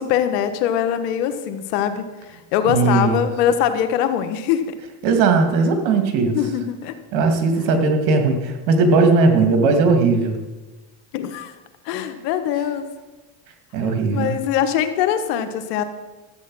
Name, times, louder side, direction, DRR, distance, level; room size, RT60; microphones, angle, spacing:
voice 1, 0.0-2.1 2.5-4.6 6.3-6.9 11.1-11.5 11.8-12.8 14.1-15.8, left 9 dB, 90° left, 9 dB, 1.4 m, -22 dB
voice 2, 2.6-3.2 5.0-6.4 7.1-10.4 13.7-14.3, right 4 dB, 85° right, 6 dB, 2.3 m, -18 dB
14.0 x 8.2 x 6.2 m, 1.2 s
supercardioid pair, 100°, 46 cm